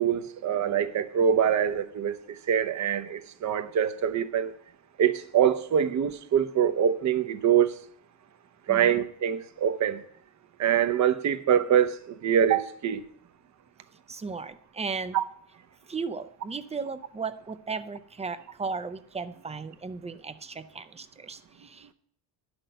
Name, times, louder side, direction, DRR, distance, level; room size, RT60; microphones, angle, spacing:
voice 1, 0.0-4.5 5.0-7.8 8.7-10.0 10.6-13.0 15.1-15.2, right 9 dB, 40° right, 0.8 m, -24 dB
voice 2, 14.1-15.2 15.9-21.9, right 4 dB, 15° right, 0.4 m, -36 dB
10.5 x 6.2 x 6.6 m
cardioid pair, 125°, 44 cm